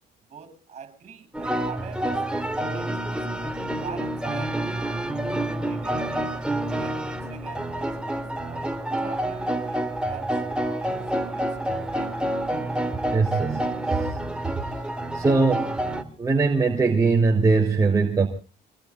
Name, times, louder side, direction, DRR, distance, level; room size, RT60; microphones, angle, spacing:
voice 1, 0.3-6.3 6.8-12.2 13.3-13.5, right 7 dB, 40° right, 12 dB, 7.0 m, -45 dB
sound 1, 1.3-16.0, right 1 dB, 5° right, 2.5 m, -28 dB
voice 2, 13.1-13.6 13.9-14.2 15.1-15.7 16.2-18.3, right 4 dB, 20° right, 1 dB, 2.6 m, -21 dB
26.5 x 19.5 x 2.4 m, 0.35 s
cardioid pair, 110°, 17 cm